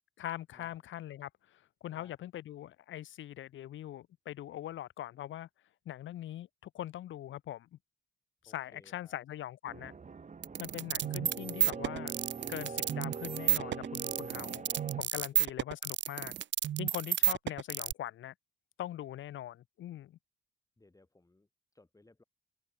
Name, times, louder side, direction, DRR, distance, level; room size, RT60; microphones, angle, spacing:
voice 1, 0.2-5.5 5.8-7.7 8.4-9.9 10.6-12.1 12.5-14.7 15.0-16.3 16.8-18.3 18.8-20.2, left 12 dB, 75° left, 1.3 m, -42 dB
voice 2, 8.5-9.2 15.3-15.7 20.8-21.5 21.7-22.2, left 2 dB, 15° left, 6.0 m, -62 dB
sound 1, 9.7-15.0, right 5 dB, 35° right, 3.2 m, -43 dB
sound 2, 10.4-17.9, right 11 dB, 65° right, 1.1 m, -31 dB
cardioid pair, 75°, 20 cm